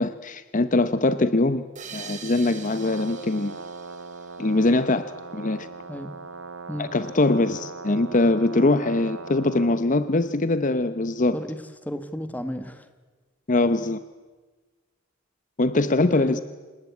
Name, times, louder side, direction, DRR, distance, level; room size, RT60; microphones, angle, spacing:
voice 1, 0.0-1.6 1.9-3.5 4.4-5.7 6.8-11.4 13.5-14.0 15.6-16.4, left 2 dB, 40° left, 12 dB, 0.8 m, -22 dB
sound 1, 1.8-5.1, right 7 dB, 35° right, 2.7 m, -43 dB
Brass instrument, 2.7-9.8, right 4 dB, 75° right, 1.8 m, -40 dB
voice 2, 11.3-12.9 15.9-16.4, equal, 10° left, 10 dB, 1.5 m, -33 dB
27.5 x 18.0 x 9.6 m, 1.3 s
head